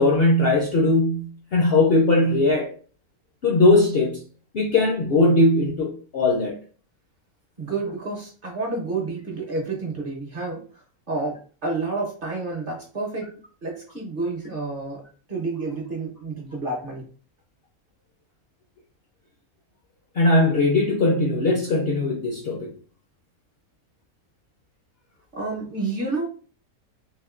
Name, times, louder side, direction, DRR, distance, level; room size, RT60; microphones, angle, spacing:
voice 1, 0.0-2.7 3.4-4.2 4.5-6.6 20.2-22.7, left 2 dB, 60° left, 0.6 m, -19 dB
voice 2, 7.6-10.8 11.1-15.0 15.3-17.0 25.3-26.3, right 3 dB, 45° right, 0.8 m, -30 dB
3.5 x 2.6 x 2.4 m
omnidirectional pair, 1.5 m